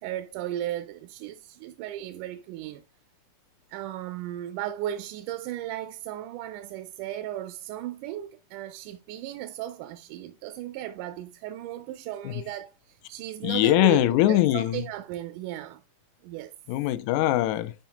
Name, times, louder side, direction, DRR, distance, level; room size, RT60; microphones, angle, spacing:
voice 1, 0.0-2.8 3.7-15.8 16.2-16.5, right 12 dB, 85° right, 2.1 m, -36 dB
voice 2, 13.4-14.9 16.7-17.7, left 15 dB, 80° left, 1.9 m, -22 dB
9.1 x 5.1 x 2.8 m
omnidirectional pair, 3.6 m